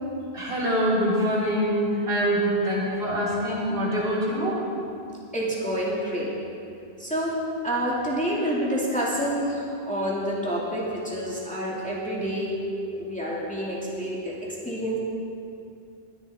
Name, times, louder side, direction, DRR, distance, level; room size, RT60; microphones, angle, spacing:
voice 1, 0.3-4.6, equal, 60° right, -7 dB, 3.7 m, -24 dB
voice 2, 5.3-6.3 7.0-7.4 7.6-12.6 12.9-15.0, equal, 5° left, -6 dB, 2.4 m, -28 dB
20.5 x 10.5 x 4.3 m, 2.6 s
omnidirectional pair, 1.1 m